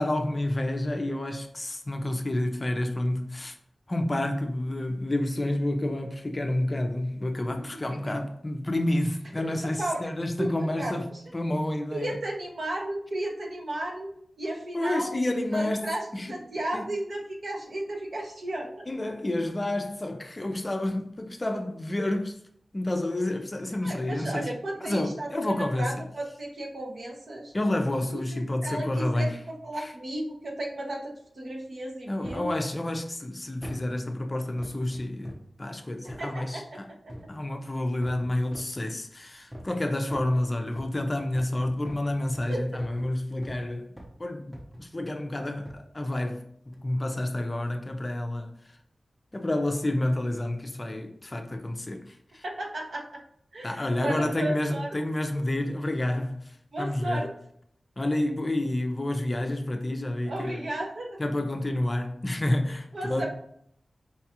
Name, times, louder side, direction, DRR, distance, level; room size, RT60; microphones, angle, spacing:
voice 1, 0.0-3.5 3.9-11.1 11.3-12.2 14.7-16.3 16.7-16.9 18.9-22.3 22.7-24.5 24.8-25.9 27.5-29.4 29.7-29.9 32.1-36.9 37.3-43.9 44.2-48.6 49.3-52.4 53.6-57.3 58.0-60.7 61.2-63.3, left 1 dB, 25° left, 0.4 m, -29 dB
voice 2, 7.6-8.2 9.4-10.0 10.4-11.0 11.9-14.1 14.4-15.2 15.5-18.7 23.8-27.5 28.1-32.5 36.2-36.8 37.0-37.1 42.5-42.6 52.4-53.2 53.5-54.9 56.7-57.3 60.2-61.1 62.9-63.3, right 1 dB, 70° right, 0.8 m, -34 dB
sound 1, 32.2-32.6 33.6-33.9 34.6-35.5 36.1-36.3 37.1-37.4 38.0-38.8 39.5-39.8 40.1-43.7 44.0-44.2 44.5-44.9 45.6-45.9 46.7-47.0 47.6-47.7, equal, 5° right, 0.7 m, -44 dB
4.6 x 2.3 x 2.8 m
wide cardioid pair, 115°, 0 cm